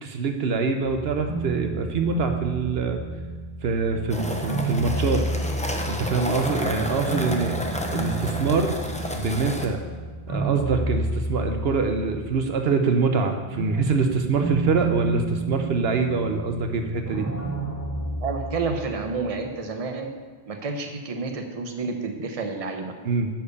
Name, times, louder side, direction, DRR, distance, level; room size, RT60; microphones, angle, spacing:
voice 1, 0.0-3.0 3.6-5.2 5.9-7.6 7.9-8.7 9.1-9.8 10.3-17.3 23.0-23.3, right 4 dB, 70° right, 5 dB, 0.9 m, -24 dB
sound 1, 0.8-12.8 13.2-19.6, right 2 dB, 20° right, 2.0 m, -31 dB
sound 2, 4.1-9.7, equal, 10° left, 0.7 m, -31 dB
voice 2, 18.2-20.1 20.5-22.9, right 4 dB, 35° right, 4 dB, 0.9 m, -30 dB
10.0 x 4.5 x 6.8 m, 1.4 s
omnidirectional pair, 1.1 m